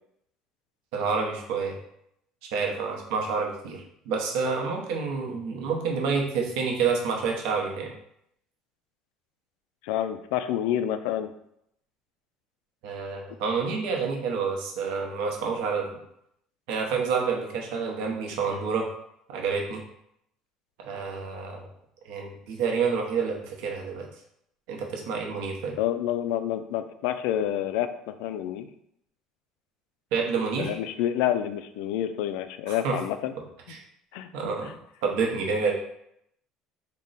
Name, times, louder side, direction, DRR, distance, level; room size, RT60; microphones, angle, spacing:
voice 1, 0.9-1.7 2.5-7.9 12.8-16.0 16.7-18.9 19.3-19.8 20.8-21.7 22.0-24.1 24.7-25.7 30.1-30.8 32.7-33.0 33.7-33.8 34.3-34.8 35.0-35.7, right 5 dB, 80° right, 0 dB, 0.8 m, -28 dB
voice 2, 9.8-11.3 25.8-28.7 30.6-33.3 34.1-34.3 34.6-34.7, left 11 dB, 80° left, 10 dB, 0.3 m, -28 dB
3.7 x 2.1 x 3.9 m, 0.75 s
cardioid pair, 145°, 0 cm